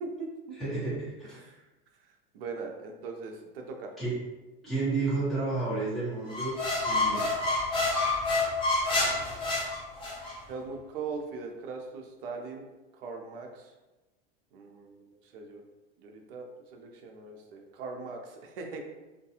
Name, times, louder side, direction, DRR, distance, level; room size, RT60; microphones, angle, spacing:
voice 1, 0.0-0.6 1.3-1.5 2.3-3.9 9.1-9.3 10.5-12.7 12.9-13.7 14.5-15.6 16.0-18.8, right 4 dB, 70° right, 3 dB, 0.6 m, -40 dB
voice 2, 0.5-1.6 4.0-4.2 4.6-6.6 6.8-7.5, right 3 dB, ahead, -13 dB, 1.2 m, -31 dB
sound 1, 6.3-10.4, left 2 dB, 15° left, 0.5 m, -28 dB
2.3 x 2.2 x 2.7 m, 1.1 s
supercardioid pair, 155°, 30 cm